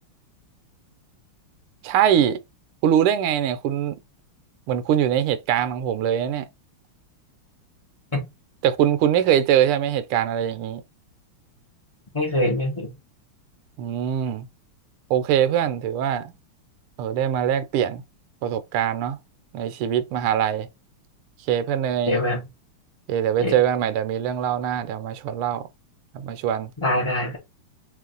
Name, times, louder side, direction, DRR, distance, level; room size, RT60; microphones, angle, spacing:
voice 1, 1.8-2.4 2.8-4.0 4.7-6.5 8.6-10.8 13.8-14.5 15.1-16.3 17.0-18.0 18.4-19.2 19.5-20.7 21.5-22.1 23.1-25.7 26.1-26.7, right 10 dB, 80° right, 1.6 m, -22 dB
voice 2, 12.1-12.9 22.1-22.4 23.4-23.5 26.8-27.4, left 1 dB, 45° left, 0.3 m, -23 dB
3.6 x 3.2 x 3.8 m
omnidirectional pair, 2.4 m